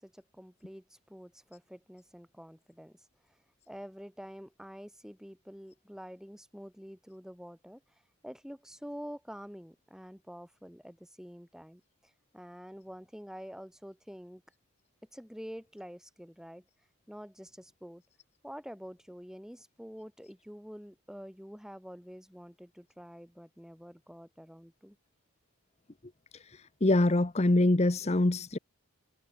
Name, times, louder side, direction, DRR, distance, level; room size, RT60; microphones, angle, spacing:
voice 1, 0.0-3.0 3.7-7.8 8.2-11.8 12.3-14.4 15.1-16.6 17.1-18.0 18.4-25.0, equal, ahead, 5.4 m, -47 dB
voice 2, 26.5-28.6, left 2 dB, 30° left, 0.8 m, -25 dB
head